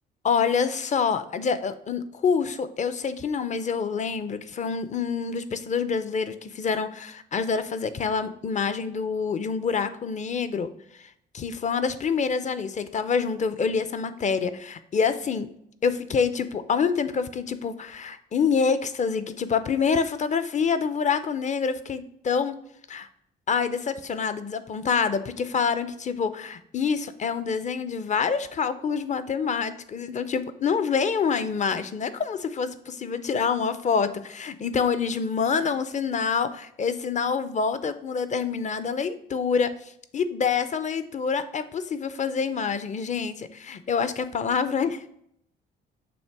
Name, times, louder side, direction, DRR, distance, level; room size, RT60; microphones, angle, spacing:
voice 1, 0.2-10.7 11.0-15.5 15.8-22.6 22.9-23.1 23.5-45.1, left 6 dB, 35° left, 12 dB, 0.6 m, -26 dB
7.1 x 2.9 x 4.7 m, 0.72 s
cardioid pair, 90°, 20 cm